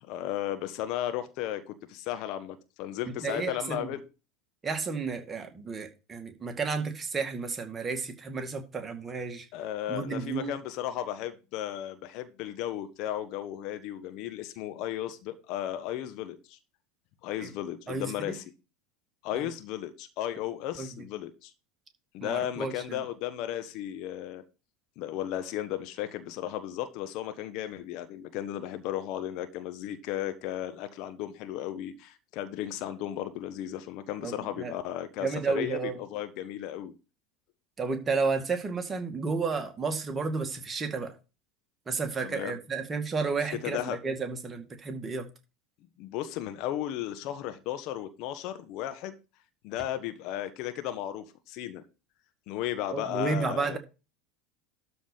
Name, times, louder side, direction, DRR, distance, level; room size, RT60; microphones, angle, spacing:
voice 1, 0.0-4.0 9.5-16.6 17.2-18.4 19.2-21.5 22.1-24.4 25.0-36.9 42.2-42.6 43.6-44.0 46.0-49.1 49.6-51.8 52.5-53.8, left 12 dB, 50° left, 1.2 m, -35 dB
voice 2, 3.1-4.0 4.6-9.5 9.9-10.5 17.4-17.5 17.9-18.4 19.4-19.5 20.8-20.9 22.2-23.0 34.2-34.7 35.2-36.0 37.8-41.1 41.9-45.3 52.9-53.8, right 4 dB, 20° right, 2.1 m, -32 dB
12.5 x 4.3 x 5.5 m
figure-of-eight pair, 80°, 0 cm